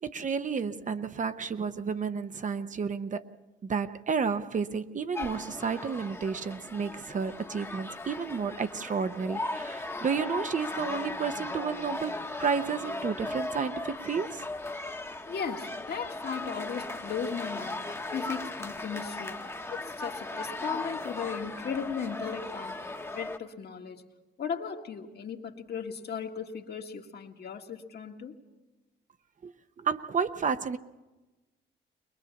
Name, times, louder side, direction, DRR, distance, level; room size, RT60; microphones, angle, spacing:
voice 1, 0.0-3.3 3.6-14.4 29.4-29.5 29.8-30.8, right 6 dB, 40° right, 0.8 m, -31 dB
sound 1, 5.1-23.4, left 2 dB, 10° left, 1.1 m, -37 dB
voice 2, 15.3-17.8 18.1-22.8 23.1-24.0 24.4-28.4, left 6 dB, 55° left, 1.8 m, -37 dB
21.5 x 21.5 x 7.1 m
cardioid pair, 90°, 20 cm